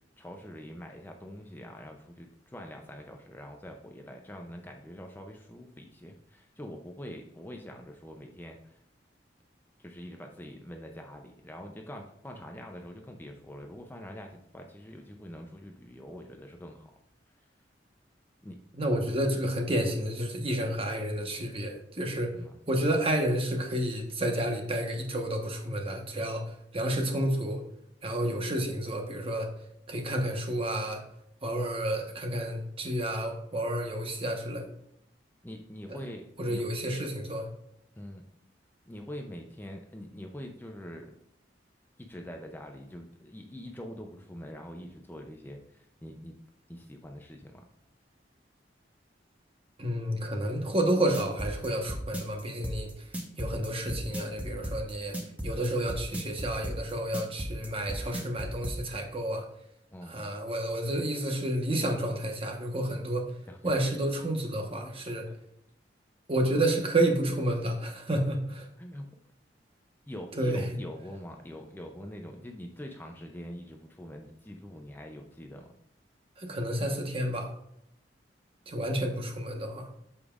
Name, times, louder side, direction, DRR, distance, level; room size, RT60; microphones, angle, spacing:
voice 1, 0.2-8.8 9.8-16.9 18.4-18.6 22.3-22.5 35.4-36.6 38.0-38.2 38.9-41.1 42.0-46.4 46.7-47.6 59.9-60.3 63.5-63.6 68.8-69.1 70.1-75.7, equal, 10° left, 3 dB, 0.5 m, -44 dB
voice 2, 18.7-22.4 22.7-27.6 28.0-29.5 29.9-31.0 31.4-34.7 35.9-36.0 36.4-37.5 49.8-55.2 55.4-59.5 60.0-63.3 63.6-65.3 66.3-68.7 70.3-70.7 76.4-77.5 78.7-79.9, right 1 dB, 30° right, 3 dB, 1.2 m, -30 dB
sound 1, 50.9-58.8, equal, 10° right, 1.0 m, -35 dB
8.3 x 7.1 x 2.5 m, 0.75 s
head